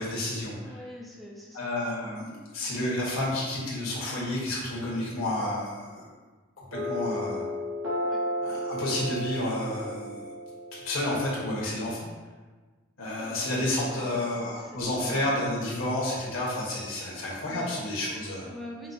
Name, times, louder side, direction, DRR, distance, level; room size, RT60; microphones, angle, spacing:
voice 1, 0.0-0.8 1.5-6.1 6.6-7.4 8.4-10.2 10.7-12.1 13.0-18.5, left 1 dB, 70° left, -5 dB, 1.4 m, -30 dB
voice 2, 0.6-1.6 8.0-8.2 13.2-15.4 17.5-17.8 18.4-18.9, equal, ahead, -3 dB, 0.5 m, -44 dB
sound 1, 6.7-11.8, equal, 65° right, 1.2 m, -33 dB
5.4 x 2.1 x 4.1 m, 1.3 s
head